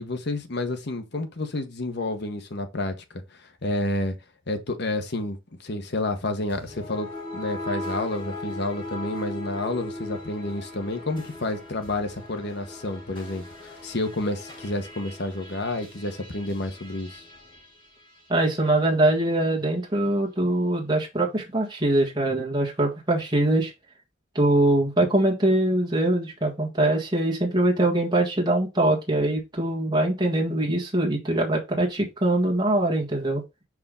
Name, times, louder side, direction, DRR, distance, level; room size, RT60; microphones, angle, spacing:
voice 1, 0.0-4.2 4.5-7.1 7.3-17.2, left 2 dB, 60° left, 1.2 m, -30 dB
sound 1, 6.5-18.8, left 1 dB, 25° left, 3.3 m, -39 dB
voice 2, 18.3-23.7 24.3-33.4, right 1 dB, 20° right, 1.6 m, -23 dB
5.4 x 4.9 x 3.7 m
head